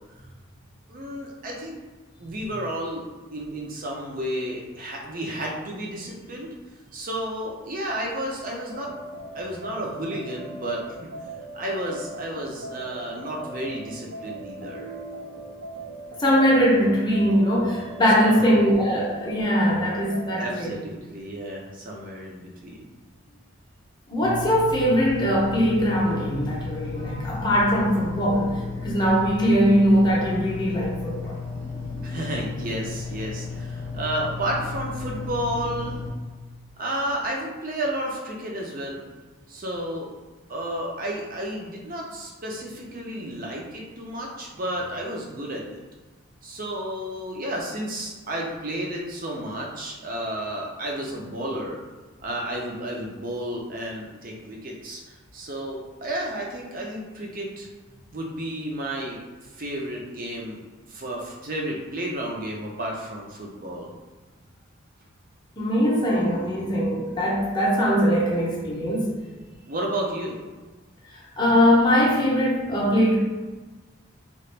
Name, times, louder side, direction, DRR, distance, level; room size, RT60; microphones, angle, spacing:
voice 1, 0.9-1.8 2.2-3.0 3.3-6.5 6.9-8.9 9.3-11.1 11.5-14.9 18.2-18.7 20.4-22.8 32.0-36.0 36.8-39.1 39.5-40.1 40.5-45.8 46.4-51.8 52.2-57.7 58.1-59.2 59.5-60.6 60.9-63.9 69.7-70.4, right 1 dB, 40° right, -1 dB, 0.5 m, -32 dB
sound 1, 8.7-20.5, right 2 dB, 90° right, 0.5 m, -39 dB
voice 2, 16.2-20.8 24.1-31.4 65.6-69.2 71.1-73.2, equal, 20° left, -5 dB, 0.6 m, -21 dB
sound 2, 24.2-36.1, left 4 dB, 60° right, 1.1 m, -34 dB
2.9 x 2.4 x 3.2 m, 1.3 s
head